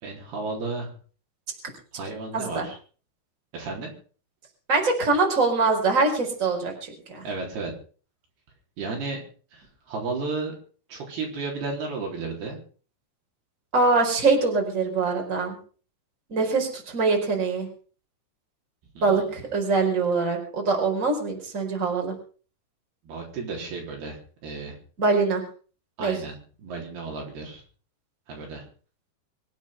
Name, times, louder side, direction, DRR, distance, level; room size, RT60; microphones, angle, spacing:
voice 1, 0.0-0.9 1.9-2.8 3.5-3.9 7.2-7.7 8.8-10.5 10.9-12.6 19.0-19.3 23.0-24.8 26.0-27.6 28.3-28.6, right 3 dB, 65° right, 0 dB, 5.7 m, -33 dB
voice 2, 2.3-2.7 4.7-7.3 13.7-15.6 16.3-17.7 19.0-22.1 25.0-25.4 26.0-26.1, right 4 dB, 20° right, 1 dB, 4.5 m, -23 dB
25.0 x 8.4 x 5.8 m, 0.41 s
omnidirectional pair, 5.0 m